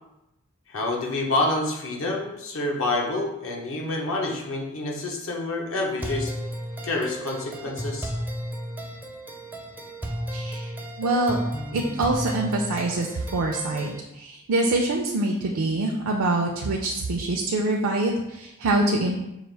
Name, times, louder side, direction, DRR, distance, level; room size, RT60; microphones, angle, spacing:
voice 1, 0.7-6.3 6.8-8.1, left 2 dB, 65° left, -1 dB, 0.9 m, -27 dB
sound 1, 6.0-14.0, equal, 10° right, 0.4 m, -34 dB
voice 2, 10.3-10.7 11.0-11.4 11.7-19.2, right 2 dB, 70° right, 1 dB, 0.5 m, -25 dB
5.5 x 2.4 x 3.3 m, 0.90 s
head